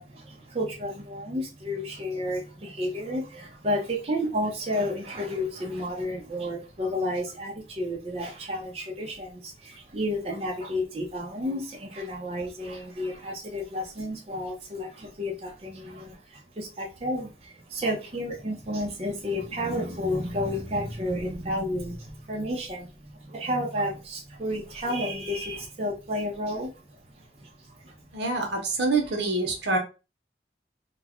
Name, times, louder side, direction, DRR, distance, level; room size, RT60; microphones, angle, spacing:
voice 1, 0.0-26.7 27.4-27.5 27.8-27.9, equal, 35° right, 0.6 m, -31 dB
voice 2, 28.1-29.8, right 3 dB, 80° right, 0.8 m, -26 dB
2.3 x 2.1 x 3.5 m
head